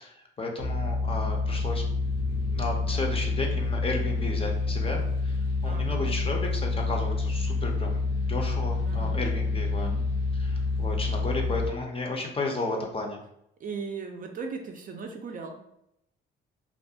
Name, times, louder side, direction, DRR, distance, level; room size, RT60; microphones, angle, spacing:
voice 1, 0.0-1.8 2.3-5.4 5.6-9.9 10.3-13.2, left 2 dB, 30° left, 1 dB, 0.5 m, -33 dB
sound 1, 0.6-11.7, left 3 dB, 75° left, 0.7 m, -28 dB
voice 2, 5.6-6.1 8.8-9.2 9.7-10.1 13.6-15.7, right 5 dB, 45° right, 3 dB, 0.4 m, -38 dB
2.4 x 2.2 x 2.7 m, 0.79 s
cardioid pair, 90°, 20 cm